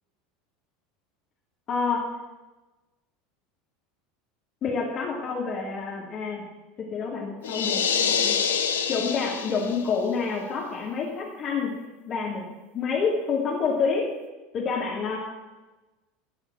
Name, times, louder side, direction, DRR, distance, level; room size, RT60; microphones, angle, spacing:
voice 1, 1.7-2.0 4.6-6.4 6.9-8.4 8.9-11.7 12.1-12.4 12.7-14.1 14.5-15.2, left 5 dB, 40° left, -3 dB, 2.3 m, -28 dB
sound 1, 7.4-9.9, left 7 dB, 75° left, 0.7 m, -26 dB
14.5 x 4.9 x 7.3 m, 1.1 s
figure-of-eight pair, 75°, 0 cm